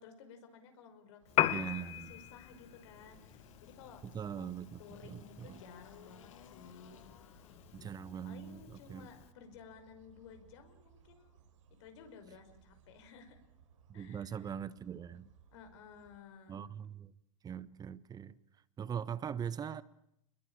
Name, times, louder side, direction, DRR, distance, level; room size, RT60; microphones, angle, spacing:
voice 1, 0.0-7.0 8.2-11.4 11.8-13.4 13.9-14.5 15.5-16.6, left 6 dB, 65° left, 5.4 m, -56 dB
sound 1, 1.2-16.2, right 7 dB, 75° right, 5.5 m, -65 dB
Piano, 1.3-9.3, left 14 dB, 40° left, 1.4 m, -40 dB
voice 2, 1.5-2.1 4.0-5.5 7.7-9.1 13.9-15.3 16.5-17.1 17.4-18.4 18.8-19.8, right 8 dB, 25° right, 1.2 m, -41 dB
Engine, 2.5-9.0, left 9 dB, 80° left, 2.1 m, -61 dB
27.5 x 21.5 x 8.9 m
hypercardioid pair, 105°, 16 cm